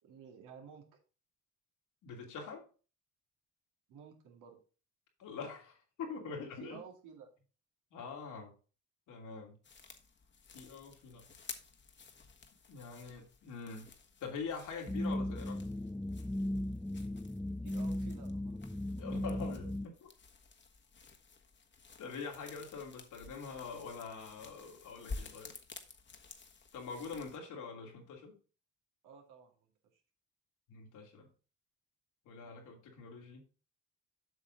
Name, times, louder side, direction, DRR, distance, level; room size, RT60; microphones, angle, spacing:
voice 1, 0.0-0.9 3.9-4.6 6.2-7.3 17.6-18.8 29.0-29.7 29.9-30.0, right 7 dB, 85° right, 2 dB, 2.4 m, -54 dB
voice 2, 2.0-2.6 5.2-6.8 7.9-8.5 9.1-9.6 10.5-11.2 12.7-13.9 14.2-15.6 19.0-20.1 22.0-25.5 26.7-28.3 30.7-31.3 32.2-33.4, left 5 dB, 80° left, 1 dB, 2.9 m, -44 dB
sound 1, 9.6-27.4, left 4 dB, 35° left, 1.4 m, -52 dB
sound 2, 14.9-19.9, left 1 dB, 5° left, 0.4 m, -37 dB
8.0 x 6.0 x 4.0 m, 0.36 s
cardioid pair, 90°, 30 cm